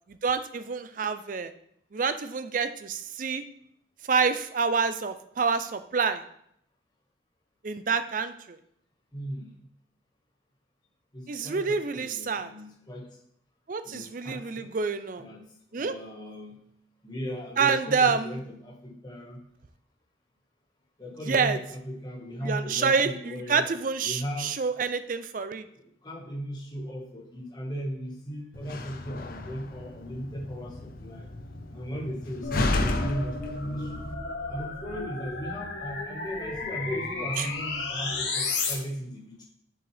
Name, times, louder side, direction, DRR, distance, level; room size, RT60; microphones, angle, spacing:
voice 1, 0.1-1.5 1.9-3.4 4.1-6.2 7.6-8.6 11.3-12.5 13.7-15.2 15.7-16.0 17.6-18.4 21.3-21.6 22.4-25.7 37.4-37.5, right 5 dB, 45° right, 11 dB, 0.4 m, -27 dB
voice 2, 9.1-9.5 11.1-13.1 13.8-14.7 15.2-16.6 17.0-19.4 21.0-23.6 24.0-24.5 25.7-31.3 31.7-34.0 34.5-39.4, equal, 20° left, -3 dB, 1.6 m, -37 dB
Slam, 28.5-34.1, left 2 dB, 50° left, 0.6 m, -33 dB
sound 1, 32.4-38.7, left 3 dB, 70° left, 1.5 m, -33 dB
7.4 x 6.2 x 3.4 m, 0.71 s
head